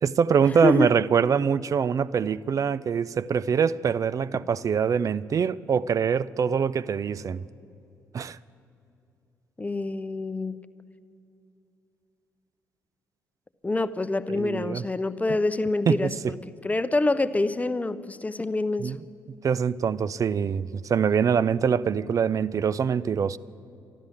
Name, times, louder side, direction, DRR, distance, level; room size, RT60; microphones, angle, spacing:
voice 1, 0.0-7.4 8.1-8.4 14.3-14.8 15.9-16.3 18.8-19.0 19.4-23.4, right 7 dB, 40° right, 0.4 m, -24 dB
voice 2, 9.6-10.6 13.6-16.4 16.6-19.0, left 2 dB, 15° left, 0.7 m, -26 dB
13.0 x 12.0 x 8.5 m
hypercardioid pair, 45°, 8 cm